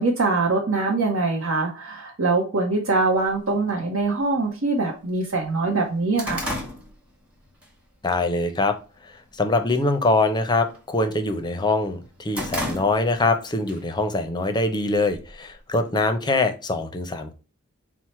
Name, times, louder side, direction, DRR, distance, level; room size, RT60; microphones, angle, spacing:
voice 1, 0.0-6.5, right 3 dB, 80° right, -1 dB, 0.8 m, -23 dB
sound 1, 3.3-3.4 4.3-4.4 4.9-5.0 5.3-7.7 8.1-8.4 8.8-9.3 9.6-9.9 10.2-11.5 11.9-13.3 13.7-13.8 14.7-15.6, left 1 dB, 5° right, 1.1 m, -33 dB
voice 2, 8.0-8.7 9.0-17.3, left 2 dB, 20° left, 8 dB, 0.5 m, -23 dB
4.5 x 2.1 x 4.2 m, 0.34 s
head